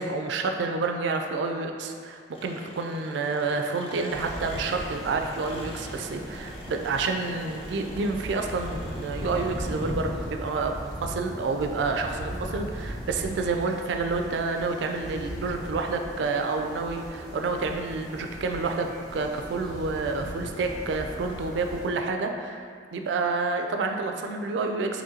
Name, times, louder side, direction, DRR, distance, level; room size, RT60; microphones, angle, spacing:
voice 1, 0.0-25.0, right 3 dB, 70° right, 4 dB, 0.3 m, -29 dB
Engine, 2.3-10.5, left 1 dB, 30° left, 0.4 m, -45 dB
sound 1, 4.1-21.9, equal, ahead, 0.8 m, -38 dB
3.7 x 3.0 x 2.8 m, 2.2 s
head